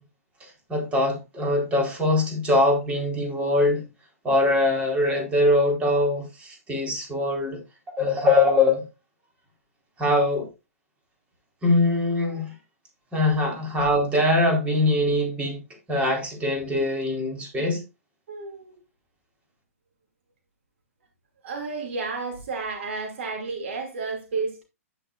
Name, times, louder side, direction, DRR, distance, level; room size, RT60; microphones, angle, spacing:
voice 1, 0.4-3.8 4.2-7.6 7.9-8.8 10.0-10.5 11.6-12.5 13.1-15.6 15.9-17.8, left 2 dB, 15° right, 4.1 m, -22 dB
voice 2, 18.3-18.7 21.4-24.6, right 4 dB, 50° right, 2.6 m, -31 dB
10.5 x 10.0 x 2.5 m
figure-of-eight pair, 115°, 8 cm